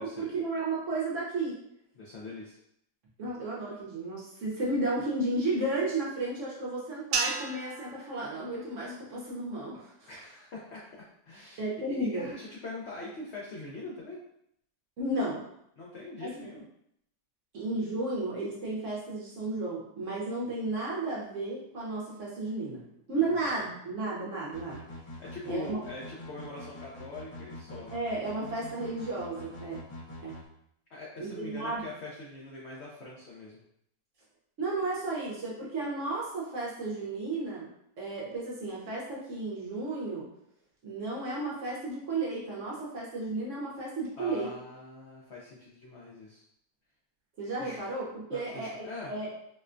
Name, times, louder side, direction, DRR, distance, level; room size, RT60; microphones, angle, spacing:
voice 1, 0.0-1.6 3.2-10.1 11.6-12.3 15.0-15.4 16.2-16.3 17.5-22.8 23.1-24.8 25.4-25.8 27.9-29.8 30.2-30.4 31.2-31.8 34.6-37.7 38.0-40.3 40.8-44.5 47.4-49.3, right 2 dB, 60° right, -5 dB, 0.9 m, -33 dB
voice 2, 1.9-2.6 10.1-14.2 15.8-16.6 23.1-23.5 25.2-28.0 30.9-33.6 44.2-46.4 47.6-47.8 48.3-49.1, left 2 dB, 80° left, -4 dB, 0.6 m, -42 dB
sound 1, 7.1-9.6, right 5 dB, 80° right, 1.2 m, -35 dB
sound 2, 24.5-30.4, left 1 dB, 25° left, 0.6 m, -45 dB
4.3 x 2.2 x 2.4 m, 0.74 s
omnidirectional pair, 1.8 m